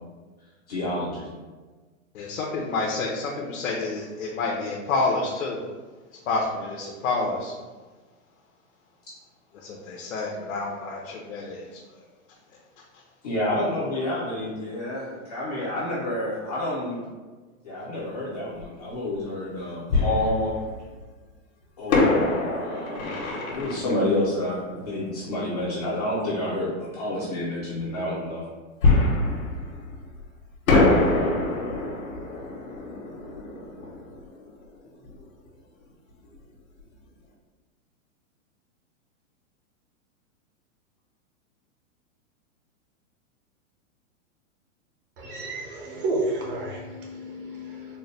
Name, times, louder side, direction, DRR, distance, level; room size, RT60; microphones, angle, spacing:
voice 1, 0.7-1.3 13.2-17.0 17.6-20.5 21.8-28.4, left 1 dB, 30° left, -8 dB, 0.4 m, -29 dB
voice 2, 2.1-5.6 6.3-7.6 9.5-12.0, left 3 dB, 65° left, -2 dB, 0.7 m, -29 dB
Fireworks, 18.6-18.7 19.9-21.0 21.9-25.4 28.8-30.3 30.7-35.2 35.5-35.6 36.1-36.3, left 2 dB, 80° left, 1.2 m, -25 dB
voice 3, 45.2-48.0, right 2 dB, 40° right, -2 dB, 0.8 m, -31 dB
4.0 x 2.1 x 3.2 m, 1.3 s
supercardioid pair, 175°, 41 cm